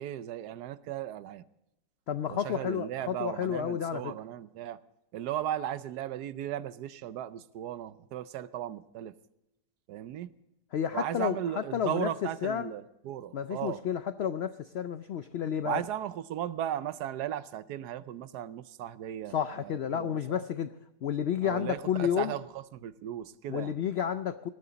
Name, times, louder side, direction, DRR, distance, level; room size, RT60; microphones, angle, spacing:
voice 1, 0.0-1.4 2.3-4.8 5.1-9.1 9.9-10.3 10.9-13.8 15.6-20.4 21.4-23.7, right 11 dB, 80° right, 15 dB, 1.2 m, -36 dB
voice 2, 2.1-4.1 10.7-12.1 12.4-12.7 13.3-15.8 19.3-20.7 21.0-22.3 23.5-24.5, left 8 dB, 80° left, 11 dB, 0.5 m, -31 dB
18.0 x 12.5 x 4.0 m, 0.89 s
omnidirectional pair, 1.7 m